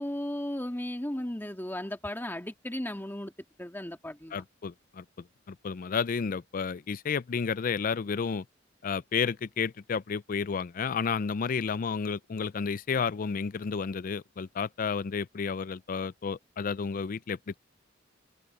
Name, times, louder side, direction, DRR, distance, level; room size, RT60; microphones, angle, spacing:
voice 1, 0.0-3.3 3.6-4.4, left 1 dB, 10° left, 1.9 m, -35 dB
voice 2, 4.3-5.0 5.5-8.4 8.8-17.5, left 6 dB, 45° left, 0.4 m, -31 dB
head